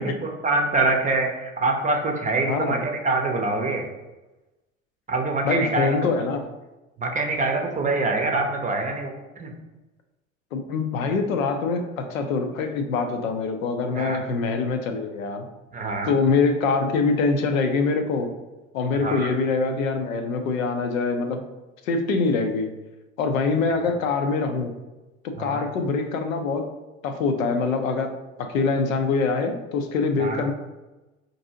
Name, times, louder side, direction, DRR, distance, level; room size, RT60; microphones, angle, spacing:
voice 1, 0.0-3.8 5.1-6.1 7.0-9.1 9.4-9.5 13.9-14.2 15.7-16.1 19.0-19.3 25.4-25.7 30.2-30.5, right 3 dB, 20° right, 2 dB, 0.6 m, -25 dB
voice 2, 2.5-2.8 5.4-6.5 10.5-15.4 16.0-18.3 18.7-21.4 21.8-22.7 23.2-24.7 25.2-26.7 27.0-28.1 28.4-30.5, left 4 dB, 80° left, 6 dB, 0.6 m, -24 dB
4.6 x 2.6 x 2.6 m, 1.1 s
hypercardioid pair, 70°, 40 cm